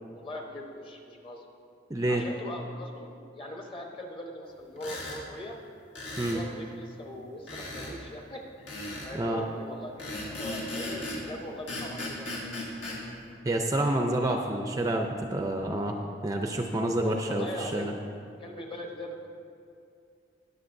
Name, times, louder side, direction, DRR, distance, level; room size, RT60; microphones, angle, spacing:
voice 1, 0.1-1.5 2.1-5.6 6.2-8.8 9.0-9.9 10.4-12.5 17.0-17.9 18.4-19.3, left 1 dB, 30° left, 1 dB, 1.0 m, -40 dB
voice 2, 1.9-2.3 6.2-6.4 9.1-9.4 13.4-16.0 16.2-17.9, right 1 dB, 20° right, 3 dB, 0.4 m, -28 dB
sound 1, 4.8-5.2 5.9-6.4 7.5-7.9 8.7-9.1 10.0-11.2 11.7-13.0, left 1 dB, 80° left, 2.3 m, -36 dB
20.0 x 6.8 x 2.6 m, 2.4 s
head